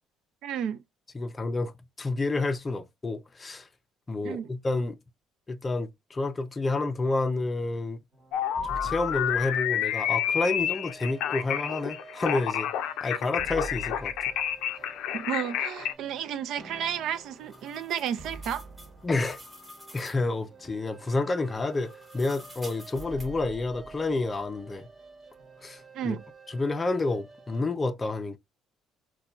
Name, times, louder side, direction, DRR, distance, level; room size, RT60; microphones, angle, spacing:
voice 1, 0.4-0.8 4.2-4.5 15.1-18.6 25.9-26.2, right 9 dB, 70° right, 0.4 m, -32 dB
voice 2, 1.1-1.7 2.0-3.7 4.1-5.0 5.5-8.0 8.7-12.7 13.0-14.1 19.0-19.4 19.9-24.9 25.6-26.2 26.5-28.4, left 3 dB, 20° left, 0.4 m, -29 dB
sound 1, 8.1-27.6, right 3 dB, 30° right, 1.0 m, -47 dB
sound 2, 8.3-15.9, left 10 dB, 80° left, 0.4 m, -29 dB
sound 3, 16.9-20.3 21.6-23.3, left 1 dB, 10° right, 1.0 m, -49 dB
4.1 x 2.2 x 2.3 m
cardioid pair, 130°, 0 cm